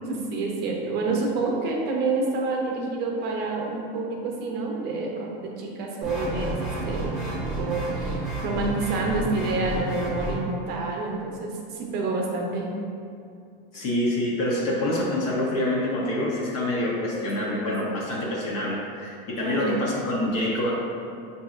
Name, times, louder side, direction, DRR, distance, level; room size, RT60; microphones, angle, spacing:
voice 1, 0.0-7.3 7.6-12.8 17.4-17.5 19.4-19.7, right 3 dB, 35° right, -1 dB, 0.6 m, -28 dB
sound 1, 6.0-10.4, right 2 dB, ahead, 0.9 m, -30 dB
voice 2, 13.7-20.7, left 1 dB, 50° left, -4 dB, 0.7 m, -26 dB
5.2 x 2.8 x 2.4 m, 2.4 s
supercardioid pair, 145°, 29 cm